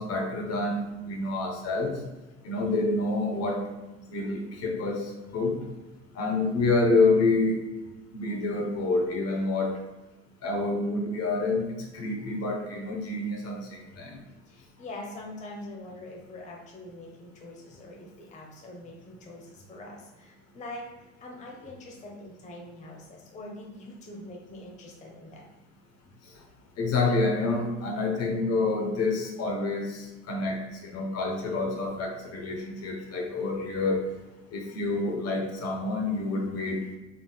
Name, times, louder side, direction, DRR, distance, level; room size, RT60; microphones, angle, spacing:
voice 1, 0.0-2.0 2.4-3.7 4.1-5.6 6.1-7.6 8.1-9.8 10.4-11.7 11.9-13.7 14.0-14.1 26.8-34.0 34.5-36.8, left 3 dB, 45° left, 1 dB, 0.8 m, -27 dB
voice 2, 14.0-25.4, left 1 dB, 20° left, -1 dB, 0.7 m, -44 dB
3.8 x 3.5 x 2.2 m, 1.1 s
hypercardioid pair, 70°, 37 cm